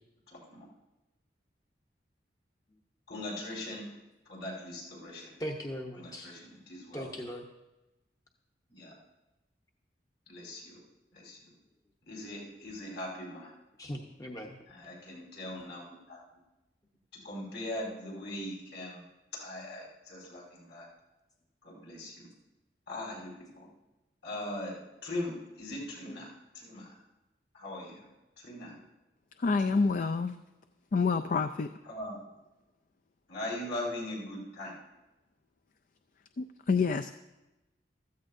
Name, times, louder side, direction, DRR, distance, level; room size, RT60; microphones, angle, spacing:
voice 1, 0.3-0.6 3.1-3.9 4.3-5.3 5.9-7.1 8.8-8.9 10.3-10.8 11.1-11.4 12.0-13.5 14.7-16.2 17.1-19.0 19.3-20.9 21.6-22.3 22.9-23.7 24.2-26.3 26.5-26.9 27.5-28.0 28.4-28.7 29.7-29.8 31.8-32.2 33.3-34.8, left 1 dB, 70° left, -4 dB, 5.1 m, -40 dB
voice 2, 5.4-6.3 6.9-7.4 13.8-14.6, equal, 20° left, 1 dB, 0.8 m, -39 dB
voice 3, 29.4-30.4 30.9-31.7 36.4-37.1, left 4 dB, 50° left, 9 dB, 0.4 m, -27 dB
15.0 x 14.0 x 2.6 m, 1.0 s
head